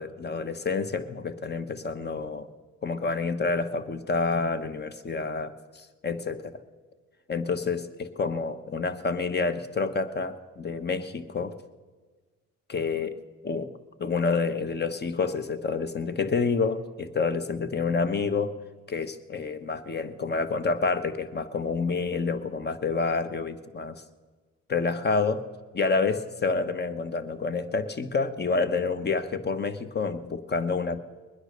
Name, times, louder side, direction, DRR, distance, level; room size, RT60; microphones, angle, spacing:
voice 1, 0.0-2.5 2.8-6.6 7.3-11.5 12.7-13.1 13.4-13.7 14.0-18.6 18.9-24.0 24.7-25.5 25.7-31.0, left 4 dB, 35° left, 12 dB, 1.3 m, -28 dB
21.5 x 10.0 x 6.6 m, 1.4 s
cardioid pair, 90°, 30 cm